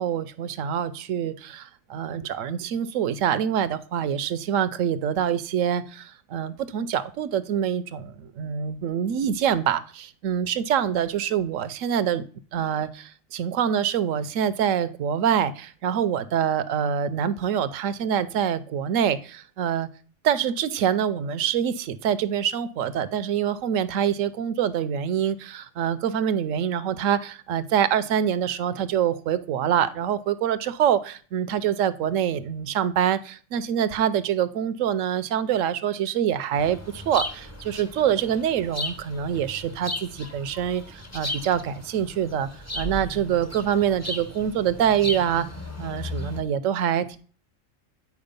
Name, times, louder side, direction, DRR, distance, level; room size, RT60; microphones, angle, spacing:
voice 1, 0.0-12.2 12.5-19.9 20.2-42.5 42.7-45.5 45.8-47.2, right 9 dB, 80° right, 14 dB, 1.0 m, -25 dB
sound 1, 36.6-46.4, left 1 dB, 15° left, 0.6 m, -36 dB
9.5 x 4.7 x 5.2 m, 0.42 s
omnidirectional pair, 1.3 m